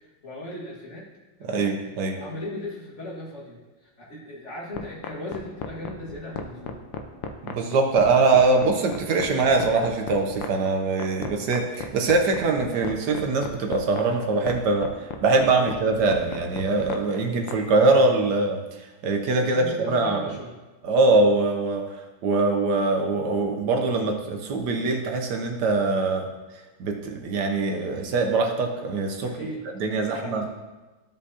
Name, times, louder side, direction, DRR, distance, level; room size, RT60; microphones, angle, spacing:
voice 1, 0.2-1.1 1.4-1.7 2.2-6.8 15.5-15.8 19.4-20.5 29.2-29.7 30.1-30.4, left 1 dB, 35° left, -5 dB, 1.9 m, -37 dB
voice 2, 1.5-2.2 7.4-20.2 20.8-21.8 22.2-26.3 26.8-29.4 29.8-30.4, right 3 dB, 65° right, 3 dB, 1.1 m, -23 dB
sound 1, 4.7-17.6, left 7 dB, 70° left, 1.3 m, -34 dB
13.5 x 5.4 x 2.8 m, 1.2 s
omnidirectional pair, 2.4 m